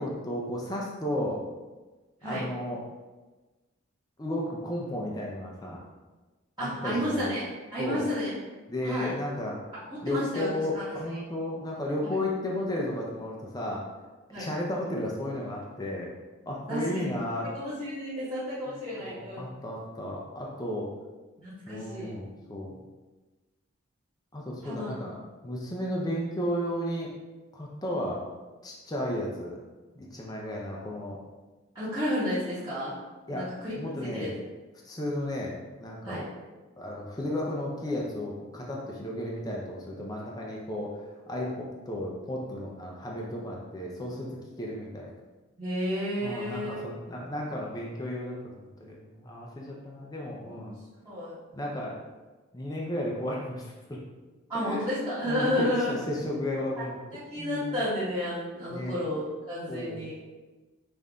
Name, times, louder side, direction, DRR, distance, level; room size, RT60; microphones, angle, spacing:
voice 1, 0.0-1.4 2.2-2.8 4.2-5.8 6.6-7.3 7.8-8.1 8.7-9.6 10.0-13.8 14.3-16.1 16.5-17.5 19.0-20.9 21.7-22.7 24.3-25.2 25.4-27.1 27.5-28.2 28.6-29.6 30.0-31.2 33.3-33.5 33.8-34.3 34.8-36.3 36.8-40.9 41.3-44.3 44.6-45.1 46.2-50.7 51.5-52.0 52.5-54.0 54.5-54.8 55.2-57.0 57.4-57.8 58.7-59.0 59.7-60.0, left 1 dB, 20° left, -3 dB, 0.5 m, -33 dB
voice 2, 6.6-7.4 7.7-8.3 8.8-9.1 9.7-10.8 12.0-12.1 14.3-14.5 16.7-17.1 17.5-19.5 21.4-22.1 24.6-24.9 31.7-33.0 33.3-33.7 34.0-34.3 36.0-36.2 45.6-46.8 50.5-50.8 51.0-51.4 54.5-56.0 56.8-56.9 57.1-60.2, left 1 dB, 20° right, -13 dB, 1.2 m, -31 dB
5.5 x 2.6 x 3.6 m, 1.2 s
head